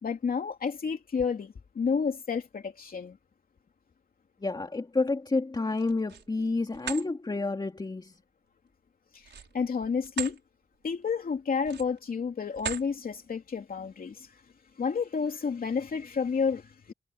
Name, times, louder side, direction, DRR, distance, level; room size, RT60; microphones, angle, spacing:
voice 1, 0.0-3.2 9.1-10.4 10.8-14.4 14.8-16.9, left 5 dB, 55° left, 2.9 m, -30 dB
voice 2, 4.4-8.2, left 3 dB, 25° left, 2.9 m, -29 dB
sound 1, 5.7-6.3 6.7-7.1 9.2-10.4 10.8-11.0 11.6-12.1 12.5-12.9, right 8 dB, 85° right, 6.6 m, -38 dB
wide cardioid pair, 160°, 18 cm